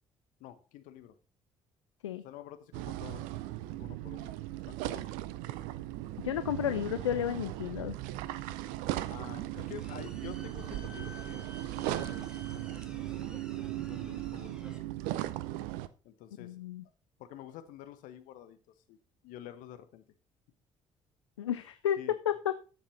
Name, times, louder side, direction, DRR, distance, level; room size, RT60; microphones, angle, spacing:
voice 1, 0.4-1.1 2.2-4.4 4.7-5.1 9.1-11.5 11.8-12.8 13.5-14.6 16.0-16.6 17.2-18.6 18.9-19.0 19.2-20.0 22.0-22.2, left 11 dB, 65° left, 10 dB, 1.2 m, -49 dB
sound 1, 2.7-15.9, right 15 dB, 65° right, 0.6 m, -38 dB
voice 2, 6.2-8.0 16.4-16.8 21.4-22.0 22.2-22.6, left 10 dB, 80° left, 13 dB, 0.4 m, -32 dB
sound 2, 9.5-14.8, left 1 dB, 5° right, 2.8 m, -51 dB
12.5 x 7.3 x 4.1 m, 0.34 s
figure-of-eight pair, 50°, 15 cm